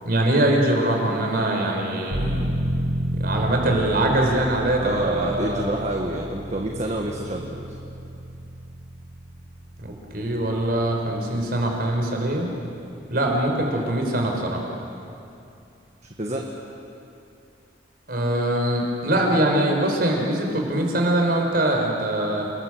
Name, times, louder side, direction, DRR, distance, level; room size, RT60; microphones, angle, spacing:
voice 1, 0.0-2.5 3.1-5.7 9.8-12.5 13.1-14.6 18.1-22.5, right 1 dB, 50° right, 1 dB, 5.0 m, -23 dB
sound 1, 2.1-14.6 15.0-15.1, right 1 dB, 80° right, 6.9 m, -32 dB
voice 2, 4.8-7.8 13.2-13.4 16.2-16.4, right 1 dB, 35° right, 0 dB, 1.6 m, -28 dB
28.5 x 21.0 x 7.9 m, 2.6 s
head